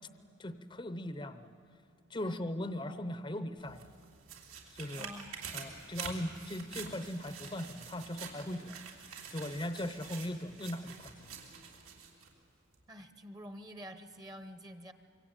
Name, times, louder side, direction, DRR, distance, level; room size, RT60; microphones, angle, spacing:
voice 1, 0.4-1.5 2.1-3.9 4.7-5.1 5.5-8.8 9.3-11.3, left 1 dB, 20° left, 11 dB, 0.7 m, -39 dB
sound 1, 3.6-12.3 12.7-12.8, right 6 dB, 85° right, 3.5 m, -47 dB
voice 2, 5.0-5.4 5.8-5.9 12.9-14.9, equal, 20° right, 10 dB, 0.8 m, -48 dB
25.5 x 23.5 x 9.0 m, 2.4 s
head